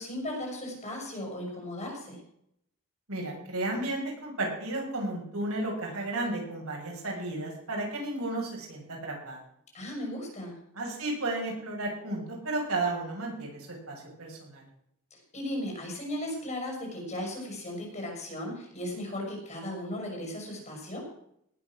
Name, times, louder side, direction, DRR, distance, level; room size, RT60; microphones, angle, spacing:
voice 1, 0.0-2.2 9.7-10.6 15.1-21.0, left 1 dB, 35° left, 1 dB, 6.4 m, -36 dB
voice 2, 3.1-9.4 10.7-13.6 13.9-14.6, right 2 dB, 90° right, -1 dB, 6.3 m, -33 dB
19.0 x 8.6 x 6.4 m, 0.73 s
head